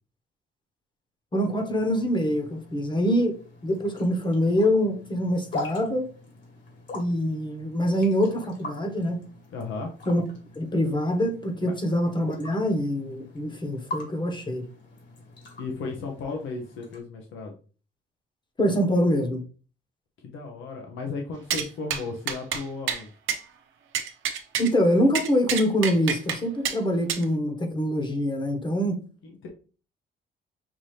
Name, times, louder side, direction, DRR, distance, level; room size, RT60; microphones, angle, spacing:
voice 1, 1.3-3.4 3.6-6.1 6.9-9.2 10.1-10.2 10.6-14.7 18.6-19.4 24.6-29.0, equal, 25° left, 1.1 m, -24 dB
sound 1, 1.4-17.0, left 2 dB, 60° left, 2.0 m, -43 dB
voice 2, 9.5-9.9 11.6-11.7 15.6-17.5 20.2-23.1 29.2-29.5, left 4 dB, 80° left, 0.9 m, -35 dB
sound 2, 21.5-21.7 21.9-22.0 22.3-22.6 22.9-23.0 23.3-23.4 23.9-24.7 25.1-26.4 26.6-26.8 27.1-27.2, right 8 dB, 80° right, 0.7 m, -28 dB
5.9 x 2.8 x 3.2 m
cardioid pair, 90°, 20 cm